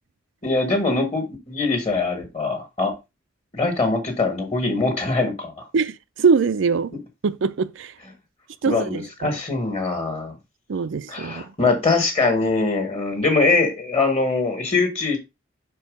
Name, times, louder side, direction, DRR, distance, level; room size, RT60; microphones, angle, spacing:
voice 1, 0.4-2.9 3.5-5.6 8.6-10.4 11.1-15.2, left 3 dB, 30° left, 1.6 m, -22 dB
voice 2, 5.7-6.9 7.2-7.9 8.6-9.4 10.7-11.5, right 5 dB, 85° right, 0.5 m, -22 dB
5.5 x 4.6 x 5.1 m
head